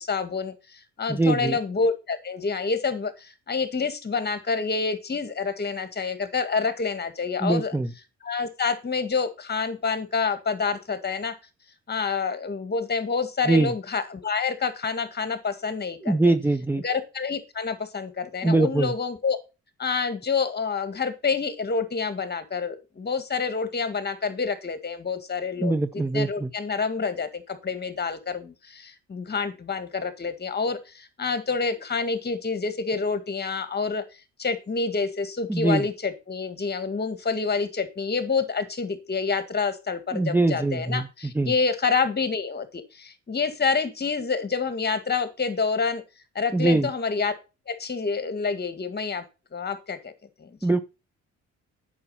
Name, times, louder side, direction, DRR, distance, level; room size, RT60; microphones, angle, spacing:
voice 1, 0.0-7.7 8.2-11.4 11.9-16.3 16.8-19.4 19.8-34.0 34.4-46.0 46.4-47.3 47.7-49.3 49.5-50.1 50.4-50.6, left 5 dB, 35° left, 10 dB, 1.9 m, -28 dB
voice 2, 1.1-1.6 7.4-7.9 13.5-13.7 16.0-16.8 18.4-18.9 25.6-26.5 35.5-35.8 40.1-41.0 41.3-41.5 46.5-46.9 50.6-50.8, right 2 dB, 5° right, 7 dB, 0.6 m, -22 dB
8.6 x 6.3 x 5.7 m, 0.29 s
cardioid pair, 90°, 30 cm